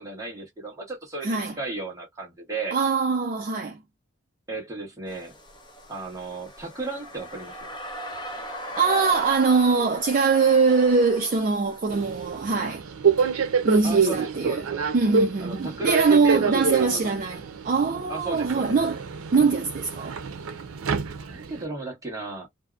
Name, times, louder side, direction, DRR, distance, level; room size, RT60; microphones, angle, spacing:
voice 1, 0.0-2.8 4.5-5.3 5.9-7.7 13.8-14.8 15.4-17.4 18.1-18.7 21.3-22.5, right 3 dB, 15° right, 1.1 m, -35 dB
voice 2, 1.2-1.5 2.7-3.8 8.8-12.8 13.6-14.6 14.9-19.0 19.3-20.2, right 4 dB, 40° right, 0.4 m, -22 dB
sound 1, 5.1-12.7, left 1 dB, 20° left, 0.7 m, -38 dB
Subway metro underground, 11.9-21.7, right 5 dB, 90° right, 0.5 m, -27 dB
2.6 x 2.0 x 2.3 m
head